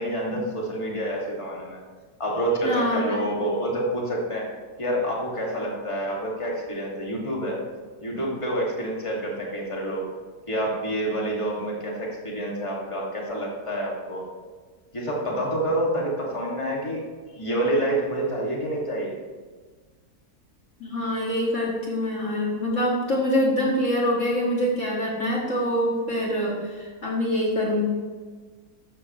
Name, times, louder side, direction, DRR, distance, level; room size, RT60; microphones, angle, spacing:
voice 1, 0.0-1.8 2.2-7.6 8.0-10.1 10.5-14.3 14.9-19.1, right 1 dB, 20° left, -3 dB, 2.4 m, -28 dB
voice 2, 2.6-3.2 20.8-27.9, left 1 dB, 50° left, -3 dB, 2.4 m, -25 dB
13.5 x 12.5 x 3.2 m, 1.5 s
omnidirectional pair, 1.7 m